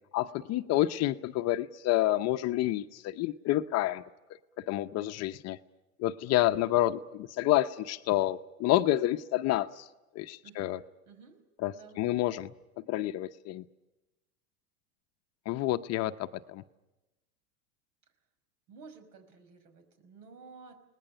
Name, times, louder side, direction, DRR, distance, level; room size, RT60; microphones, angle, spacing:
voice 1, 0.1-4.0 4.7-5.6 6.0-9.8 10.1-10.8 11.6-12.5 12.9-13.6 15.5-16.1 16.5-16.6, left 14 dB, 35° left, 10 dB, 0.7 m, -28 dB
voice 2, 10.4-10.8 11.1-11.4 11.7-12.1 18.7-20.8, right 5 dB, 80° right, 8 dB, 5.5 m, -52 dB
29.5 x 19.5 x 6.8 m, 1.0 s
supercardioid pair, 125°, 46 cm